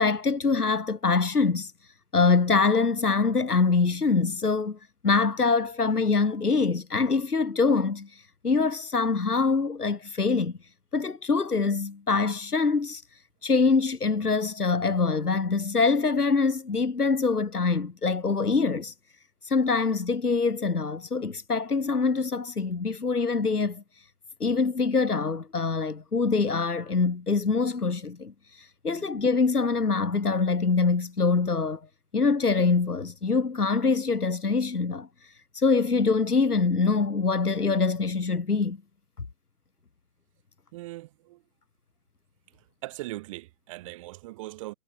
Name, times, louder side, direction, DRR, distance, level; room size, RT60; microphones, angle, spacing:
voice 1, 0.0-1.7 2.1-4.8 5.0-10.5 10.9-13.0 13.4-18.9 19.4-23.8 24.4-31.8 32.1-35.1 35.5-38.8, left 4 dB, 80° left, 4.4 m, -24 dB
voice 2, 40.7-41.4 42.8-44.7, right 19 dB, 20° right, 3.5 m, -40 dB
hypercardioid pair, 155°, 45 cm